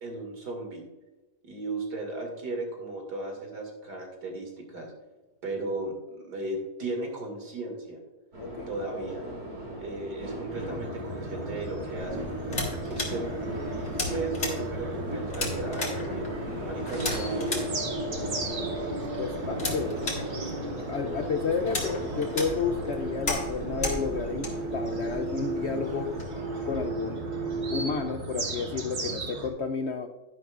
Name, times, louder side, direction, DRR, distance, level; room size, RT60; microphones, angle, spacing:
voice 1, 0.0-0.8 1.4-4.9 5.4-8.0 8.7-9.2 9.8-12.3 12.9-13.3 14.0-16.3 16.6-17.6, right 2 dB, 85° right, 2 dB, 2.9 m, -35 dB
sound 1, 8.3-28.0, right 1 dB, 65° right, 3.5 m, -35 dB
voice 2, 8.4-8.7 19.2-19.9 20.9-26.1 26.6-27.2 27.7-30.1, left 5 dB, 65° left, 6 dB, 0.7 m, -31 dB
sound 2, 10.5-29.5, right 1 dB, 45° right, 1.5 m, -38 dB
sound 3, 12.0-26.2, left 2 dB, 45° left, 2.1 m, -37 dB
11.0 x 10.5 x 2.4 m, 1.1 s
omnidirectional pair, 1.7 m